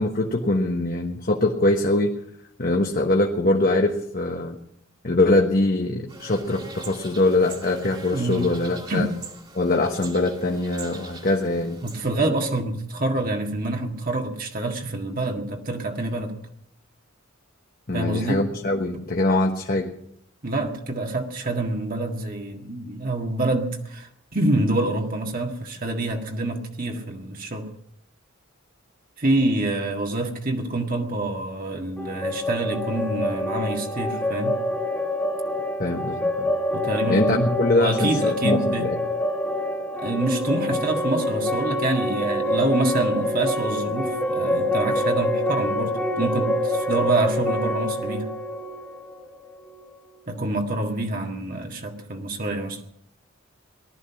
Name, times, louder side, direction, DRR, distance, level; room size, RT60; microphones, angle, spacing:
voice 1, 0.0-2.1 2.6-4.6 5.0-9.1 9.5-11.8 17.9-19.9 35.8-36.5 37.1-39.0, left 2 dB, 45° left, 2 dB, 1.3 m, -23 dB
sound 1, 6.1-12.1, right 3 dB, 25° right, 2.3 m, -42 dB
voice 2, 8.1-8.5 8.9-9.1 11.8-16.3 17.9-18.5 20.4-27.7 29.2-34.6 36.7-37.3 37.7-38.9 39.9-48.3 50.3-52.8, right 2 dB, 45° right, 2 dB, 1.8 m, -26 dB
sound 2, 32.0-49.7, left 1 dB, 5° left, 1.8 m, -26 dB
19.0 x 12.5 x 5.9 m, 0.74 s
head